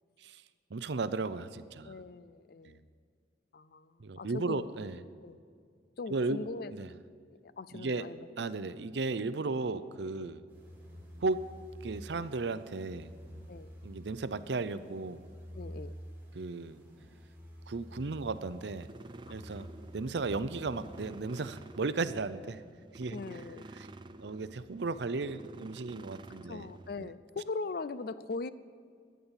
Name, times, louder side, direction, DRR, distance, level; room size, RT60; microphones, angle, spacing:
voice 1, 0.7-1.9 2.6-2.8 4.0-5.0 6.1-6.9 7.7-8.1 8.4-10.4 11.2-11.5 11.8-13.1 13.8-15.3 16.3-16.8 17.7-18.9 19.3-19.7 19.9-22.6 22.9-23.2 23.8-23.9 24.2-26.7, right 3 dB, 70° right, 13 dB, 0.6 m, -35 dB
voice 2, 1.8-2.9 3.5-4.7 5.2-5.4 6.0-6.7 7.6-8.3 10.2-10.3 13.5-13.7 15.5-16.0 19.3-19.7 23.1-23.7 26.5-28.5, left 3 dB, 55° left, 16 dB, 0.5 m, -40 dB
sound 1, 10.5-22.2, equal, 10° right, 2.9 m, -50 dB
sound 2, 17.9-27.0, right 2 dB, 25° right, 0.4 m, -50 dB
12.5 x 9.6 x 7.2 m, 2.2 s
head